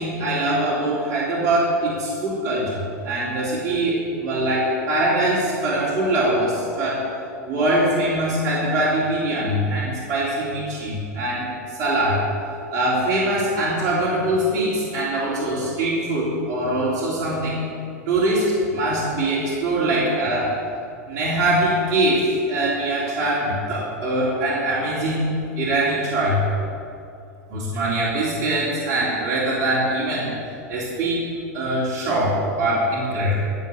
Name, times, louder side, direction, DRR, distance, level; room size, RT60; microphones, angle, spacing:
voice 1, 0.0-7.1 7.4-12.3 12.7-17.7 18.1-20.5 21.1-25.3 25.6-26.5 27.5-30.3 30.7-31.2 31.5-33.4, right 1 dB, 50° right, -7 dB, 3.5 m, -22 dB
16.0 x 5.5 x 8.1 m, 2.6 s
hypercardioid pair, 105°, 9 cm